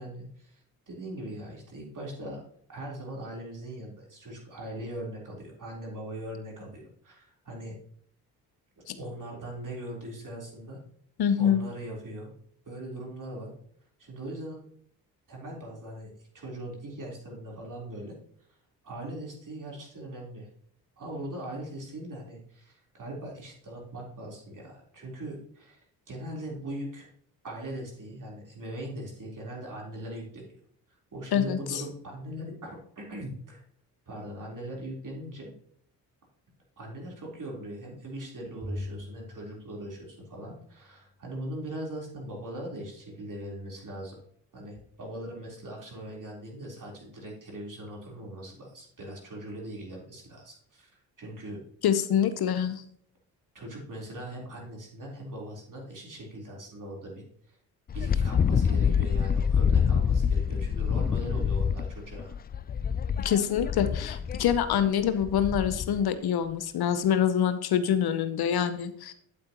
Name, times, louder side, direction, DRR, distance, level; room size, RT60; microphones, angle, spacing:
voice 1, 0.0-2.4 2.7-7.7 9.0-10.8 11.4-12.3 12.7-13.5 14.0-14.7 15.3-18.2 18.5-18.6 18.8-20.5 21.0-27.1 27.4-30.6 31.1-33.6 34.1-35.5 36.8-44.2 44.5-50.9 51.2-51.6 53.5-57.6 57.9-62.3, right 1 dB, 45° right, -2 dB, 3.7 m, -40 dB
voice 2, 11.2-11.7 31.3-31.8 51.8-52.9 63.2-69.1, left 8 dB, 55° left, 11 dB, 0.8 m, -26 dB
Bowed string instrument, 38.6-41.0, left 1 dB, 5° left, 1.3 m, -41 dB
Wind, 57.9-66.0, left 7 dB, 25° left, 0.3 m, -26 dB
8.7 x 8.3 x 3.0 m, 0.65 s
hypercardioid pair, 45°, 45 cm